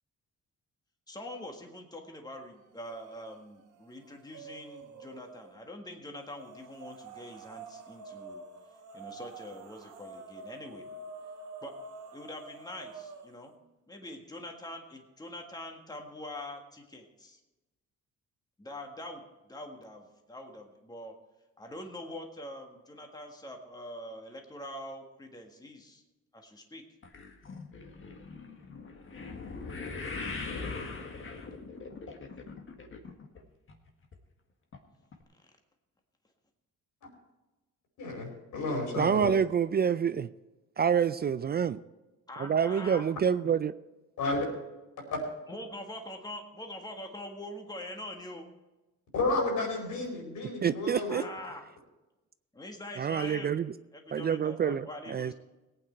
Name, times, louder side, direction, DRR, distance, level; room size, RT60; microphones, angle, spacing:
voice 1, 1.1-8.4 8.9-10.8 11.6-11.7 12.1-13.5 13.9-17.4 18.6-19.2 19.5-21.1 21.6-26.0 26.3-26.8 42.3-43.0 45.5-48.4 51.1-51.6 52.5-53.6 53.9-55.3, left 1 dB, 15° left, 2 dB, 1.7 m, -44 dB
sound 1, 2.7-3.4 3.7-5.5 6.3-13.5, right 3 dB, 80° right, 1.5 m, -48 dB
sound 2, 27.0-33.4 33.7-34.2 34.7-34.8 35.1-35.2, left 4 dB, 40° left, 1.7 m, -41 dB
voice 2, 38.0-39.3 44.2-44.5 45.1-45.2 49.1-51.3, left 2 dB, 75° left, 0 dB, 4.7 m, -31 dB
voice 3, 39.0-40.3 40.8-41.8 42.4-43.7 50.6-51.2 53.0-53.7 54.1-55.3, right 7 dB, 35° right, 14 dB, 0.4 m, -27 dB
18.0 x 9.0 x 4.5 m, 1.1 s
cardioid pair, 90°, 30 cm